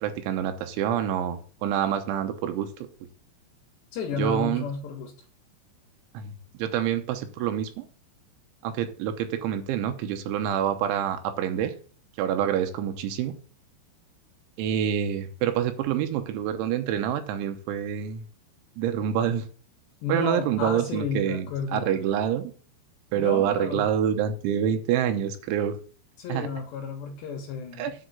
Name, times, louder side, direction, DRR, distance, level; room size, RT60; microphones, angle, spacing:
voice 1, 0.0-2.7 4.2-4.7 6.1-6.3 6.6-7.9 8.6-11.7 12.2-13.3 14.6-18.3 18.8-19.5 20.1-21.5 21.7-22.5 23.1-25.8 26.3-26.5 27.8-27.9, right 9 dB, 85° right, 3.3 m, -27 dB
voice 2, 3.9-5.1 20.0-21.9 23.1-23.9 26.2-27.9, left 5 dB, 70° left, 3.4 m, -32 dB
10.0 x 5.0 x 8.1 m
omnidirectional pair, 5.4 m